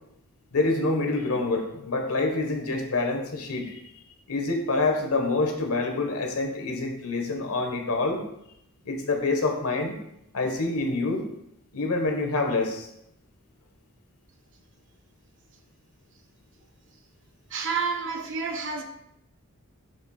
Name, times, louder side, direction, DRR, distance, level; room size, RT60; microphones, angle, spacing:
voice 1, 0.5-3.7 4.3-8.2 8.8-9.9 10.3-11.3 11.7-12.9, left 3 dB, 75° left, 1.1 m, -26 dB
voice 2, 17.5-18.8, right 5 dB, 55° right, 0.8 m, -29 dB
6.9 x 3.4 x 4.2 m
head